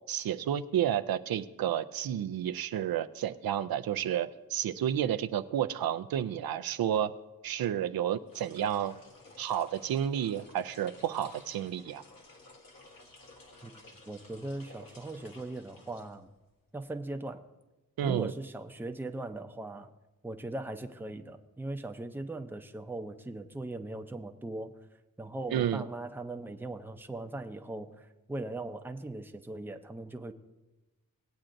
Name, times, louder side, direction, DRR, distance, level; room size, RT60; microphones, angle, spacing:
voice 1, 0.1-7.1 7.4-9.0 9.4-12.0 18.0-18.3 25.5-25.9, right 10 dB, 85° right, 11 dB, 0.5 m, -31 dB
sound 1, 8.2-16.6, left 2 dB, 70° left, 1.4 m, -55 dB
voice 2, 14.1-16.3 16.7-17.4 18.0-19.9 20.2-24.7 25.2-30.3, right 2 dB, 5° right, 5 dB, 0.5 m, -39 dB
18.0 x 8.6 x 2.6 m, 1.1 s
wide cardioid pair, 100°, 35 cm